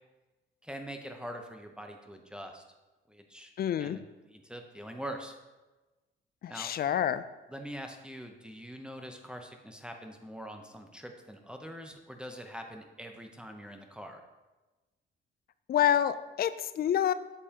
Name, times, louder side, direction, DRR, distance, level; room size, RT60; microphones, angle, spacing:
voice 1, 0.6-2.6 3.1-3.5 3.8-5.4 6.5-6.7 7.5-14.2, equal, 5° right, 4 dB, 0.7 m, -43 dB
voice 2, 3.6-4.0 6.4-7.2 15.7-17.1, left 10 dB, 50° left, 14 dB, 0.4 m, -27 dB
8.3 x 5.4 x 2.9 m, 1.1 s
cardioid pair, 90°, 20 cm